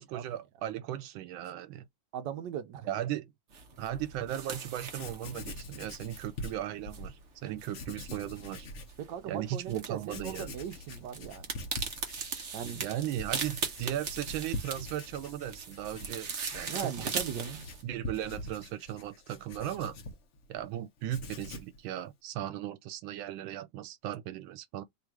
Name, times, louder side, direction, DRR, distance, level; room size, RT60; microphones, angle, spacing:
voice 1, 0.0-1.9 2.8-3.3 3.8-8.7 9.3-10.5 12.6-17.2 17.8-20.0 20.5-24.8, right 12 dB, 90° right, 1.4 m, -37 dB
voice 2, 2.1-2.9 9.0-11.5 12.5-12.8 16.7-17.6, right 9 dB, 70° right, 1.2 m, -38 dB
sound 1, 3.5-17.8, right 5 dB, 50° right, 1.0 m, -40 dB
Writing, 4.7-4.8 4.9-7.1 7.7-9.0 9.4-9.5 10.0-20.7 21.0-21.8, left 2 dB, 50° left, 0.8 m, -44 dB
3.4 x 2.5 x 4.5 m
omnidirectional pair, 2.1 m